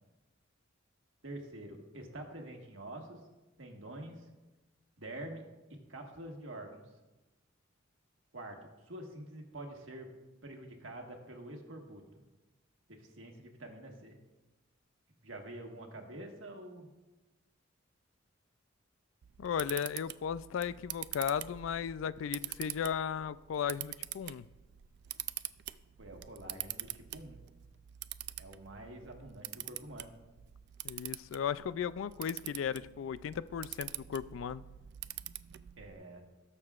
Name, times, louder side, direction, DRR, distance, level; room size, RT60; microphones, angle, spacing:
voice 1, 1.2-3.2 3.6-4.3 5.0-5.4 5.7-6.9 8.3-8.6 8.8-10.1 10.4-12.2 12.9-14.2 15.2-16.9 26.0-27.4 28.4-30.1 35.8-36.2, right 1 dB, 75° right, 2 dB, 1.6 m, -47 dB
Camera, 19.2-35.9, right 14 dB, 60° right, 0.3 m, -45 dB
voice 2, 19.4-24.5 30.8-34.6, left 7 dB, 80° left, 17 dB, 0.3 m, -36 dB
19.0 x 6.7 x 2.4 m, 1.1 s
head